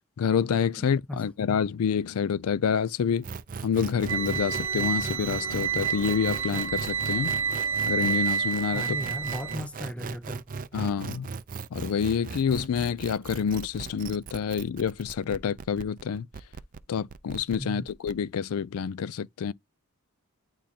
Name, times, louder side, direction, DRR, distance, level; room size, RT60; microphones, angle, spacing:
voice 1, 0.2-3.2 3.6-7.3 7.9-8.8 10.7-11.3 11.7-16.3 16.9-19.5, left 7 dB, 80° left, 0.4 m, -27 dB
voice 2, 0.8-1.2 8.7-10.4 17.6-17.9, equal, 5° left, 0.7 m, -36 dB
sound 1, 3.2-18.1, right 5 dB, 40° right, 0.4 m, -38 dB
sound 2, 4.1-9.6, right 6 dB, 60° right, 1.0 m, -29 dB
10.0 x 3.7 x 2.8 m
head